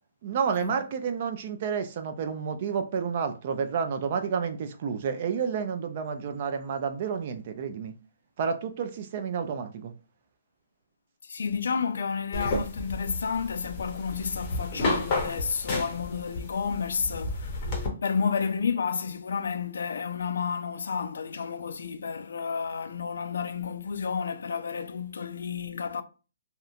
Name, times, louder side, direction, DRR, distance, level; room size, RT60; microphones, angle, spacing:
voice 1, 0.2-7.9 8.4-9.9, right 6 dB, 40° right, 0.4 m, -30 dB
voice 2, 11.2-17.7 18.0-26.0, left 6 dB, 75° left, 0.3 m, -31 dB
sound 1, 12.3-17.9, left 2 dB, 25° left, 0.6 m, -32 dB
2.8 x 2.1 x 2.4 m
hypercardioid pair, 165°, 0 cm